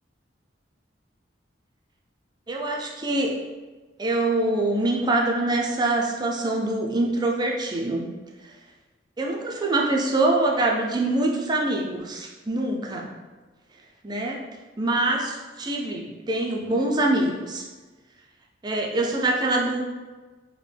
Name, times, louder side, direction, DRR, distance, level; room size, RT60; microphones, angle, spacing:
voice 1, 2.5-3.4 4.0-8.1 9.2-13.1 14.0-14.4 14.8-17.7 18.6-19.8, right 2 dB, 20° right, -1 dB, 0.4 m, -24 dB
3.8 x 2.1 x 3.3 m, 1.3 s
head